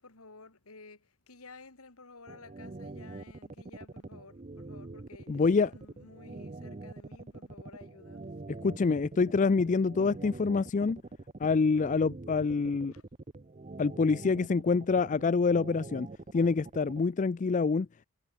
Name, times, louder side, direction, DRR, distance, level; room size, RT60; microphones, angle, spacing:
voice 1, 0.0-8.4 12.9-13.0, left 3 dB, 75° left, 2.8 m, -53 dB
sound 1, 2.3-17.0, right 2 dB, 30° right, 0.7 m, -44 dB
voice 2, 5.3-5.7 8.5-11.0 11.4-12.9 13.8-16.1 16.3-17.9, left 4 dB, 35° left, 0.4 m, -26 dB
head